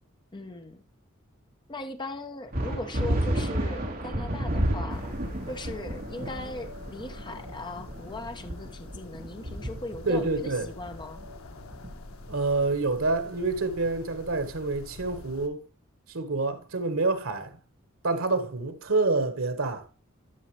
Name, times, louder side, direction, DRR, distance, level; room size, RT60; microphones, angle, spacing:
voice 1, 0.3-0.8 1.7-5.1 5.5-11.2, left 2 dB, 20° left, 0.9 m, -39 dB
sound 1, 2.5-12.5, right 1 dB, 45° right, 1.9 m, -32 dB
sound 2, 4.9-15.5, left 2 dB, 85° left, 1.1 m, -45 dB
voice 2, 10.0-10.7 12.3-15.6 16.1-17.6 18.0-19.9, right 3 dB, 85° right, 1.4 m, -27 dB
12.0 x 6.2 x 3.2 m
head